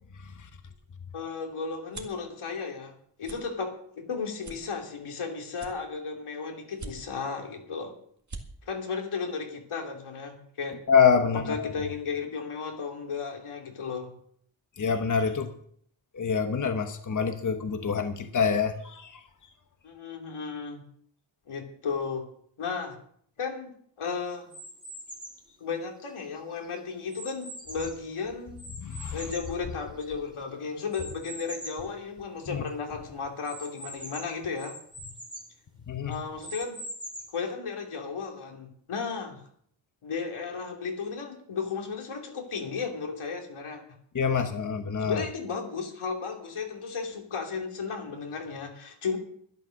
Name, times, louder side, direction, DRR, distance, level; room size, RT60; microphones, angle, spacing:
sound 1, 0.6-2.3 2.7-2.9 3.2-3.4 3.9-4.0 4.4-5.2 5.5-6.2 6.7-7.3 7.8-7.9 8.1-8.4, right 3 dB, 35° right, 2.1 m, -43 dB
voice 1, 1.1-2.9 3.2-7.9 8.7-10.8 11.2-14.1 19.8-20.8 21.5-22.3 22.6-23.0 23.4-24.5 25.6-28.6 29.1-34.8 36.0-36.8 37.3-39.4 40.0-43.8 45.0-49.2, left 5 dB, 90° left, 2 dB, 3.1 m, -34 dB
voice 2, 10.9-11.7 14.8-15.5 16.1-19.1 28.8-29.2 32.5-32.6 35.9-36.2 44.1-45.2, left 6 dB, 40° left, 7 dB, 1.1 m, -26 dB
sound 2, 24.5-25.5 26.1-28.1 28.6-30.3 30.9-31.9 32.3-32.4 32.7-32.8 33.5-35.5 36.1-37.5, equal, 10° right, 2.6 m, -43 dB
12.0 x 12.0 x 6.5 m, 0.63 s
wide cardioid pair, 150°, 49 cm